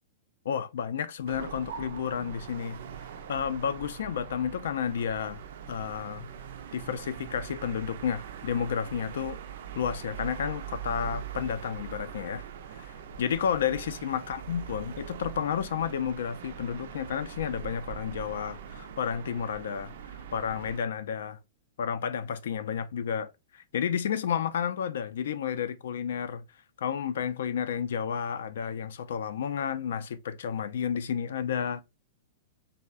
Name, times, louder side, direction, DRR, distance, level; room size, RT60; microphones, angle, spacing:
voice 1, 0.5-2.8 3.3-5.4 5.7-6.3 6.7-9.4 9.7-12.4 12.7-21.4 21.8-26.4 26.8-31.8, left 8 dB, 75° left, 0.4 m, -31 dB
sound 1, 1.3-20.8, right 8 dB, 60° right, 0.4 m, -42 dB
3.4 x 2.1 x 2.3 m
supercardioid pair, 170°, 0 cm